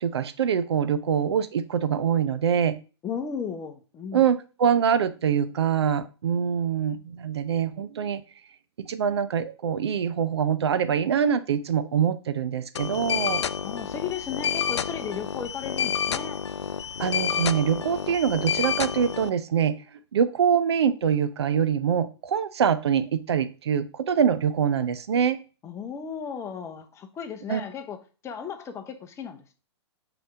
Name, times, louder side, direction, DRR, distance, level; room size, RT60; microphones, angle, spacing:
voice 1, 0.0-2.8 4.1-8.2 8.9-13.4 17.0-19.8 20.1-25.4 27.5-27.6, right 8 dB, 65° right, 0.7 m, -24 dB
voice 2, 3.0-4.2 13.6-16.4 25.6-29.6, left 7 dB, 20° left, 0.9 m, -35 dB
sound 1, 12.8-19.3, left 8 dB, 75° left, 0.4 m, -29 dB
6.1 x 3.5 x 4.9 m
figure-of-eight pair, 110°, 15 cm